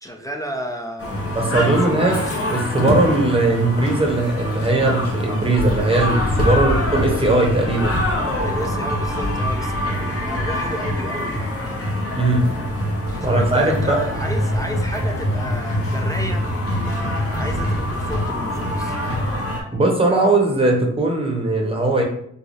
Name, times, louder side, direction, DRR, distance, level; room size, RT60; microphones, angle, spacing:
voice 1, 0.0-2.4 6.5-6.9 8.4-11.6 13.1-19.0, equal, 10° left, 3 dB, 0.3 m, -32 dB
sound 1, 1.0-19.6, left 1 dB, 50° left, 1.0 m, -24 dB
voice 2, 1.3-2.2 2.5-8.0 12.2-12.5 13.2-14.0 19.7-22.0, right 2 dB, 20° right, 0 dB, 0.8 m, -19 dB
sound 2, 12.6-18.4, right 2 dB, 65° right, 0.7 m, -29 dB
3.9 x 2.3 x 3.2 m, 0.68 s
cardioid pair, 120°, 30 cm